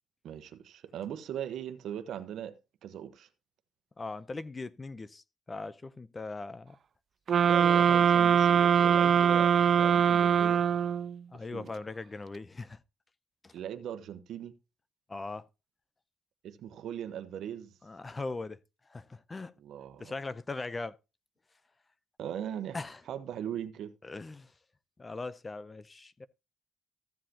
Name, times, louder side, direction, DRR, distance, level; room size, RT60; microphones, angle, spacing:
voice 1, 0.2-2.5 2.8-3.3 7.4-9.5 9.8-10.6 11.5-11.7 13.5-14.5 16.4-17.7 19.6-20.1 22.2-22.8 23.1-23.9, right 10 dB, 75° right, 1.1 m, -39 dB
voice 2, 4.0-6.8 11.3-12.8 13.4-13.5 15.1-15.4 17.8-18.6 18.9-19.5 20.0-20.9 22.7-23.0 24.0-24.5 25.0-26.3, left 3 dB, 25° left, 0.7 m, -40 dB
sound 1, 7.3-11.2, right 8 dB, 50° right, 0.4 m, -23 dB
14.5 x 7.6 x 2.9 m
cardioid pair, 90°, 0 cm